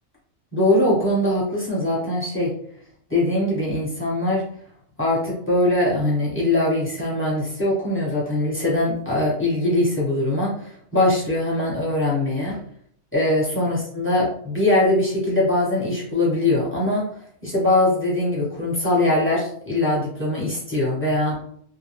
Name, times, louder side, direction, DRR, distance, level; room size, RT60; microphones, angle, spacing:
voice 1, 0.5-2.5 3.1-4.4 5.0-12.6 13.1-17.0 17.4-21.4, left 1 dB, 10° left, -7 dB, 0.9 m, -22 dB
2.6 x 2.1 x 3.3 m, 0.63 s
omnidirectional pair, 1.4 m